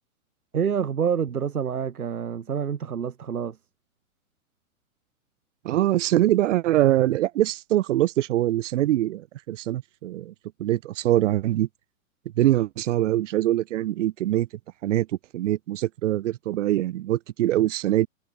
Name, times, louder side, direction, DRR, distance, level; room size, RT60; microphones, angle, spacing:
voice 1, 0.5-3.6, right 7 dB, 85° right, 5.7 m, -27 dB
voice 2, 5.6-10.3 10.6-11.7 12.4-14.5 14.8-15.1 15.3-18.1, right 14 dB, 55° right, 5.3 m, -23 dB
hypercardioid pair, 135°, 43 cm